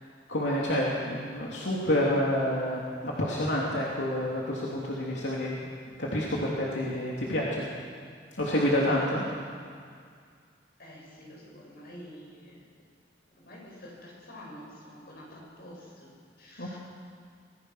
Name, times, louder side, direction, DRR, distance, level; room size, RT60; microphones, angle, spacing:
voice 1, 0.3-5.7 6.0-7.6 8.4-9.2 16.6-16.8, left 1 dB, 80° left, -5 dB, 3.2 m, -28 dB
voice 2, 10.8-12.7 13.3-16.1 16.4-16.8, equal, 55° left, -2 dB, 7.3 m, -48 dB
26.0 x 20.0 x 6.5 m, 2.1 s
head